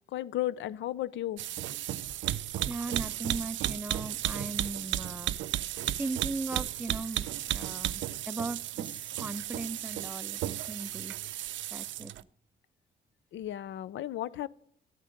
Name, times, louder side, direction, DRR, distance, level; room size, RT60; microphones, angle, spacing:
voice 1, 0.1-1.4 13.3-14.5, left 13 dB, 70° left, 0.6 m, -34 dB
sound 1, 1.4-12.2, right 13 dB, 70° right, 0.5 m, -34 dB
voice 2, 2.7-5.4 6.0-11.3 11.7-12.1, right 2 dB, 10° right, 0.4 m, -38 dB
12.5 x 9.1 x 5.1 m
cardioid pair, 90°, 20 cm